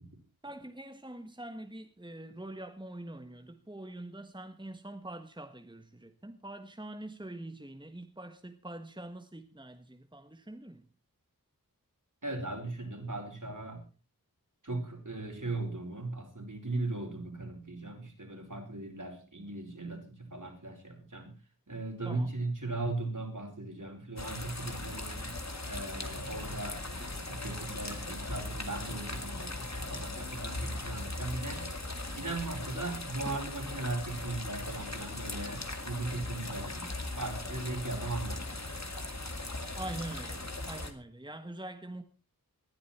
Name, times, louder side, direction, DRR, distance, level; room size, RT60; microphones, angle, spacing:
voice 1, 0.4-10.9 22.0-22.3 39.7-42.0, right 1 dB, 15° right, 1.4 m, -44 dB
voice 2, 12.2-13.8 14.6-21.4 21.7-25.3 25.6-31.7 32.1-38.5, right 2 dB, 60° right, 4.9 m, -38 dB
sound 1, 24.2-40.9, left 2 dB, 50° left, 2.2 m, -39 dB
19.5 x 11.5 x 4.4 m
wide cardioid pair, 40°, 36 cm